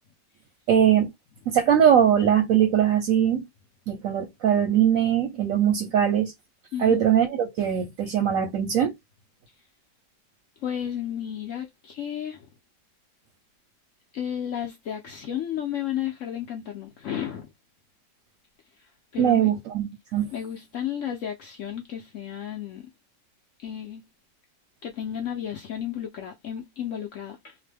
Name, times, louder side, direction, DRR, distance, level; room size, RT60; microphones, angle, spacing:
voice 1, 0.7-1.1 1.5-3.4 3.9-6.3 6.8-8.9 19.2-20.3, right 9 dB, 60° right, 0.9 m, -21 dB
voice 2, 10.6-12.5 14.1-17.5 19.1-19.5 20.3-22.8 23.6-24.0 24.8-27.6, left 10 dB, 70° left, 0.7 m, -33 dB
2.9 x 2.1 x 3.2 m
omnidirectional pair, 1.9 m